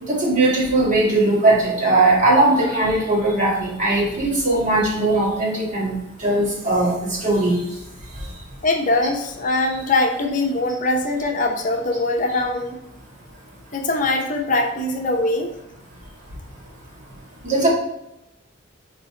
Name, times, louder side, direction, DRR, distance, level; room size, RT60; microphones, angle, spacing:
voice 1, 0.0-5.9 6.2-6.9 7.2-7.6 17.4-17.7, right 2 dB, 40° right, -5 dB, 2.0 m, -19 dB
voice 2, 8.6-12.8 13.7-15.5, left 2 dB, 40° left, 2 dB, 0.7 m, -22 dB
5.4 x 4.0 x 4.8 m, 0.88 s
head